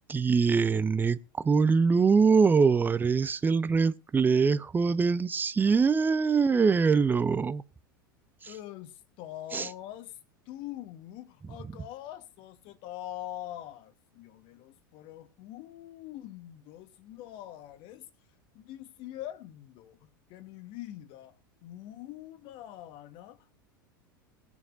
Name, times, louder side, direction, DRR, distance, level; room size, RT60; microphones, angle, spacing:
voice 1, 0.1-7.6 9.5-9.7, right 5 dB, 15° right, 0.6 m, -23 dB
voice 2, 8.4-10.2 10.5-18.1 18.5-21.3 21.6-23.5, left 13 dB, 50° left, 1.2 m, -44 dB
20.5 x 7.2 x 2.6 m
figure-of-eight pair, 85°, 11 cm